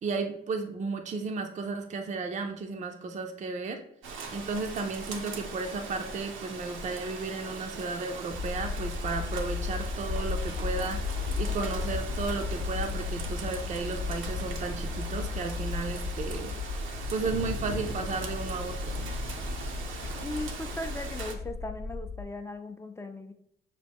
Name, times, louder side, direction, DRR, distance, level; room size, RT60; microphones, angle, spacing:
voice 1, 0.0-3.8 4.3-11.0 11.4-16.6 17.1-19.0, right 4 dB, 40° right, 5 dB, 0.5 m, -34 dB
Rain, 4.0-21.4, right 4 dB, 80° right, 0.7 m, -40 dB
sound 1, 8.3-22.2, left 4 dB, 30° left, 1.0 m, -35 dB
voice 2, 20.2-23.3, left 1 dB, 15° left, 6 dB, 0.5 m, -38 dB
6.5 x 2.2 x 3.5 m, 0.74 s
cardioid pair, 90°, 20 cm